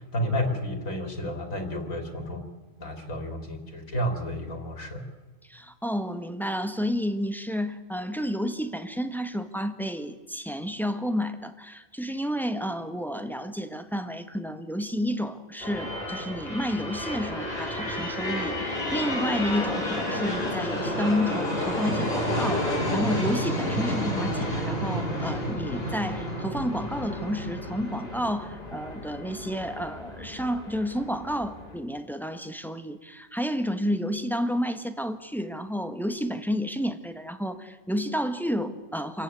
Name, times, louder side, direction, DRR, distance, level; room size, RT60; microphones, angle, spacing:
voice 1, 0.0-2.4 2.8-5.1, equal, 80° left, 6 dB, 3.1 m, -31 dB
voice 2, 5.5-39.2, equal, ahead, 9 dB, 1.1 m, -30 dB
sound 1, 15.6-31.7, left 1 dB, 50° left, 4.1 m, -31 dB
27.0 x 15.0 x 9.4 m, 1.3 s
omnidirectional pair, 1.4 m